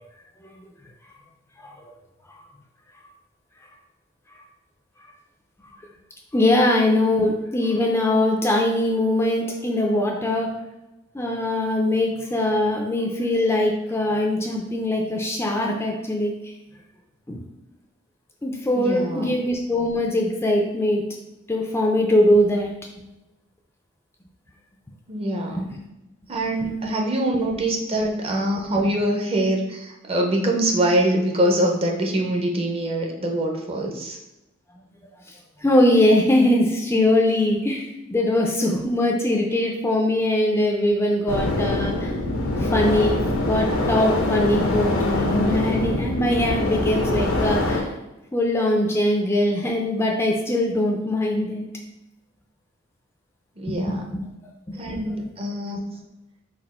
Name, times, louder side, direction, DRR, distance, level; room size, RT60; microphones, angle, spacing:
voice 1, 6.3-10.5 11.1-16.3 17.3-17.4 18.4-21.0 21.5-22.7 35.6-42.1 42.6-43.2 43.5-47.9 48.3-51.7 53.7-54.2 54.7-54.8, left 1 dB, 10° left, 0 dB, 0.4 m, -21 dB
voice 2, 18.7-19.3 25.1-25.6 26.3-34.2 53.6-54.0 54.8-55.8, right 1 dB, 30° right, 1 dB, 0.6 m, -24 dB
sound 1, 41.3-47.8, left 2 dB, 85° left, 0.8 m, -24 dB
4.2 x 2.4 x 4.2 m, 0.97 s
head